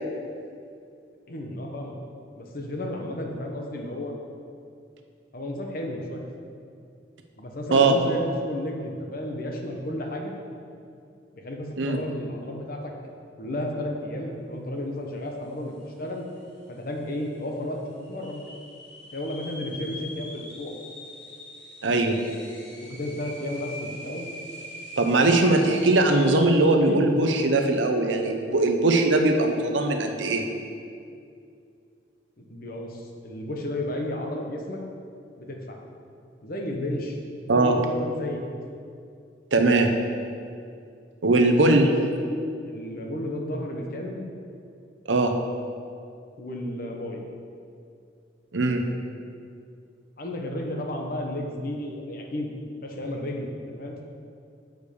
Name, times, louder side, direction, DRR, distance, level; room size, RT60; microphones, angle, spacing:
voice 1, 1.3-1.9 2.4-4.1 5.3-6.2 7.4-10.3 11.3-12.8 13.4-16.3 16.7-17.8 18.1-18.4 19.1-20.7 22.8-24.3 26.8-27.1 32.4-34.8 35.4-35.8 36.4-38.4 41.6-41.9 42.6-44.2 46.4-47.2 50.2-52.5 52.8-53.5 53.8-54.0, left 1 dB, 50° left, 1 dB, 1.0 m, -33 dB
sound 1, 15.8-15.9 16.1-16.7 17.2-17.3 18.0-26.7, left 1 dB, 75° left, 1.9 m, -42 dB
voice 2, 21.8-22.2 25.0-30.5 37.5-37.8 39.5-39.9 41.2-41.9 45.1-45.3 48.5-48.8, right 2 dB, 85° right, 4 dB, 0.8 m, -20 dB
6.5 x 5.1 x 6.8 m, 2.4 s
head